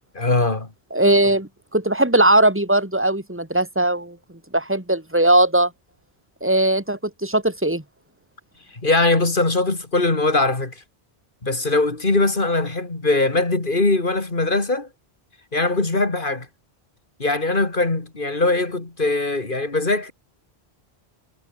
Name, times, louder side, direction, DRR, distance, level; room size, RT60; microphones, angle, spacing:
voice 1, 0.1-0.7 8.7-10.8 11.4-14.9 15.5-16.5 17.2-20.1, left 2 dB, 55° left, 2.9 m, -21 dB
voice 2, 0.9-4.2 4.5-5.7 6.4-7.8, right 1 dB, 10° right, 3.7 m, -19 dB
omnidirectional pair, 1.1 m